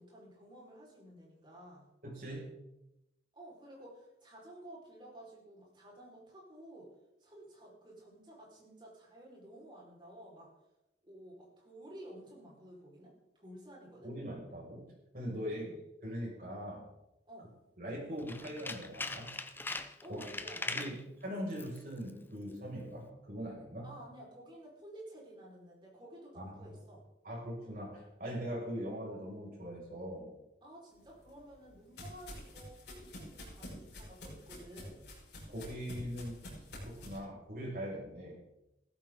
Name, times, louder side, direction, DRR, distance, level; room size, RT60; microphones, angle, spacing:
voice 1, 0.0-1.9 3.3-6.9 7.2-10.5 11.0-14.1 15.4-15.8 17.2-17.5 20.0-21.0 23.8-27.0 30.6-35.1, right 1 dB, 25° right, -3 dB, 4.9 m, -52 dB
voice 2, 2.0-2.5 14.0-14.8 15.1-15.6 16.0-16.9 17.8-19.3 20.1-20.2 20.7-23.9 26.4-26.7 27.2-30.3 35.5-36.4 36.8-38.4, equal, 55° right, -3 dB, 6.3 m, -41 dB
Tools, 18.2-21.0 21.5-21.8 22.1-22.2, left 3 dB, 10° left, 0.6 m, -40 dB
sound 1, 31.1-37.2, left 1 dB, 70° left, 5.7 m, -48 dB
16.0 x 14.0 x 3.9 m, 0.90 s
head